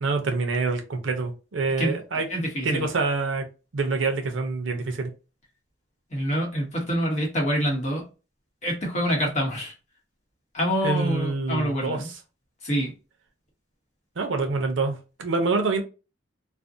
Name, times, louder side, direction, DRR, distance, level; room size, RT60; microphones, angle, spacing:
voice 1, 0.0-2.3 2.6-3.4 3.7-5.1 10.8-12.2 14.2-15.8, right 3 dB, 85° right, 5 dB, 0.6 m, -26 dB
voice 2, 2.3-2.9 6.1-8.1 8.6-9.7 10.5-12.1 12.6-12.9, equal, 40° left, -1 dB, 0.9 m, -26 dB
2.5 x 2.1 x 2.6 m, 0.31 s
head